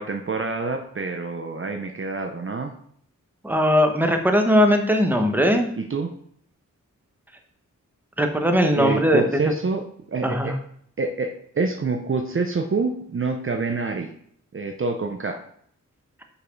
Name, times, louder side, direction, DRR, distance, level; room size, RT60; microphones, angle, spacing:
voice 1, 0.0-2.7 5.8-6.1 8.7-10.5 11.0-11.3 11.5-14.1 14.5-15.4, right 4 dB, 40° right, 4 dB, 0.6 m, -27 dB
voice 2, 3.4-5.7 8.2-9.4 10.2-10.5, equal, 5° right, 4 dB, 1.0 m, -19 dB
5.6 x 4.1 x 5.2 m, 0.64 s
cardioid pair, 55°, 31 cm